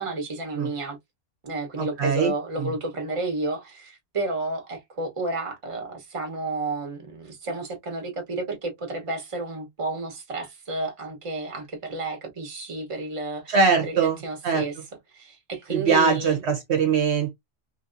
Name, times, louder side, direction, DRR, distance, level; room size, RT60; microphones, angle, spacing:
voice 1, 0.0-0.9 1.5-3.6 4.1-4.6 5.0-5.9 6.1-7.0 7.5-8.0 9.1-11.6 11.9-13.4 13.8-14.7 15.7-16.3, right 3 dB, 30° right, 0.9 m, -30 dB
voice 2, 1.8-2.3 2.6-2.7 13.5-14.7 15.7-17.3, right 5 dB, 60° right, 1.0 m, -22 dB
3.1 x 2.6 x 2.5 m
omnidirectional pair, 1.3 m